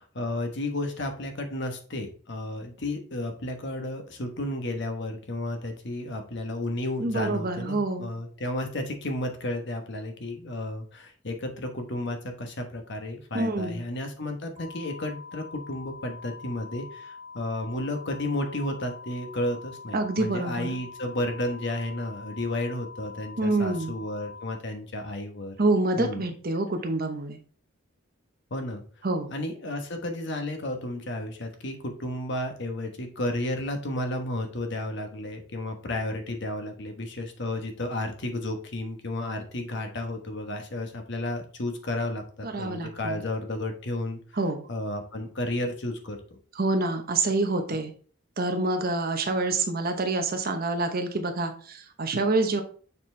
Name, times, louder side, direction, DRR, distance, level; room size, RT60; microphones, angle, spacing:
voice 1, 0.0-25.5 26.0-26.2 28.5-28.8 29.3-44.2 44.7-46.4, left 1 dB, 65° left, 5 dB, 1.2 m, -32 dB
voice 2, 7.0-8.1 13.3-13.8 19.9-20.7 23.4-23.9 25.6-27.4 29.0-29.3 42.4-43.2 44.4-44.7 46.5-47.9 48.4-52.6, right 2 dB, 50° right, 6 dB, 0.9 m, -27 dB
sound 1, 14.6-24.6, left 5 dB, 25° right, 1.2 m, -44 dB
6.9 x 4.3 x 3.3 m, 0.43 s
head